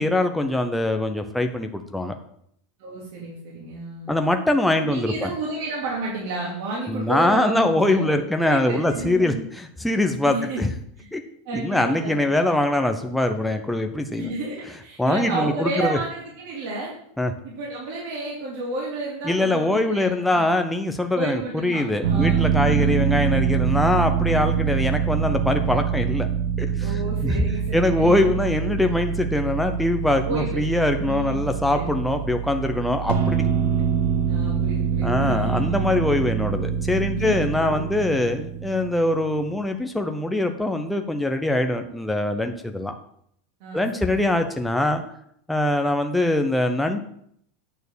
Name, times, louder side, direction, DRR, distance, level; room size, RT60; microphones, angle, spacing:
voice 1, 0.0-2.2 4.1-5.3 6.9-10.7 11.1-11.2 11.5-14.3 15.0-16.0 17.2-17.3 19.2-26.3 26.6-27.4 27.7-33.4 35.0-42.9 43.7-45.0 45.5-47.0, left 1 dB, 5° left, 5 dB, 0.6 m, -23 dB
voice 2, 2.8-4.1 4.8-8.1 8.4-9.4 10.2-10.7 11.0-11.1 11.5-12.5 14.2-16.9 17.4-20.5 21.1-23.1 24.4-24.7 26.8-28.3 30.3-30.6 31.0-31.9 33.5-33.9 34.3-35.8 37.1-38.1 43.6-44.2, right 2 dB, 55° right, -4 dB, 2.5 m, -32 dB
sound 1, 22.0-39.4, right 8 dB, 75° right, 1.4 m, -25 dB
9.1 x 4.3 x 6.7 m, 0.68 s
supercardioid pair, 155°, 0 cm